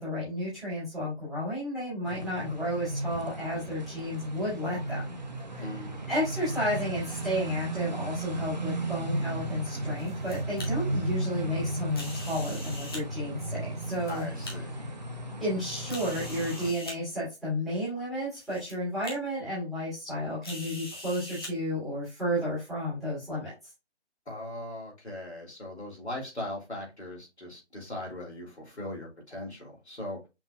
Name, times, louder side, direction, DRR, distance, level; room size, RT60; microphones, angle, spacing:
voice 1, 0.0-5.0 5.5-5.7 6.1-14.3 15.4-23.5, equal, ahead, -13 dB, 1.9 m, -32 dB
sound 1, 2.0-16.7, right 1 dB, 40° right, 0.7 m, -35 dB
voice 2, 5.6-6.1 14.1-14.9 24.3-30.2, left 1 dB, 70° left, -2 dB, 2.9 m, -39 dB
sound 2, 10.0-10.7 11.9-13.0 13.7-14.5 15.2-15.3 15.9-17.0 17.9-18.0 18.3-18.7 19.0-19.1 20.4-21.5, left 1 dB, 20° left, 1.0 m, -42 dB
5.8 x 4.0 x 2.3 m, 0.25 s
figure-of-eight pair, 155°, 35 cm